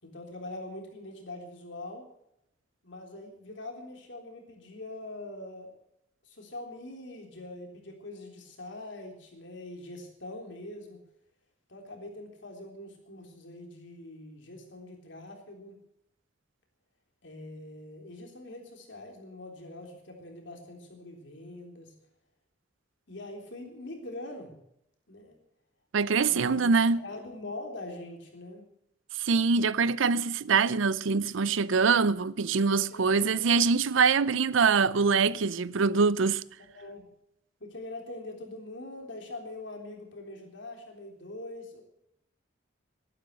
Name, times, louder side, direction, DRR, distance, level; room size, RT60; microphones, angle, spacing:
voice 1, 0.0-2.0 2.8-5.7 6.2-11.0 11.7-15.7 17.2-21.9 23.1-24.5 25.1-25.4 26.0-28.6 32.7-33.3 36.7-37.1 37.6-41.8, left 2 dB, 65° left, 3.6 m, -43 dB
voice 2, 25.9-27.0 29.2-36.4, right 5 dB, 75° right, 0.5 m, -24 dB
12.5 x 11.5 x 7.9 m
head